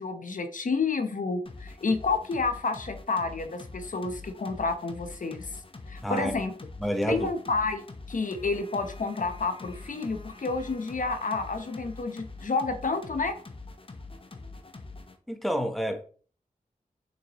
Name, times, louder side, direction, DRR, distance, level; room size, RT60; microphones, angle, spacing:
voice 1, 0.0-5.6 5.9-6.5 7.1-7.8 8.1-13.4, left 4 dB, 70° left, 1.0 m, -30 dB
sound 1, 1.5-15.2, left 3 dB, 40° left, 1.0 m, -44 dB
voice 2, 6.0-6.4 6.8-7.3 15.3-16.0, equal, ahead, 1.1 m, -28 dB
7.0 x 5.8 x 3.1 m
wide cardioid pair, 70°, 14 cm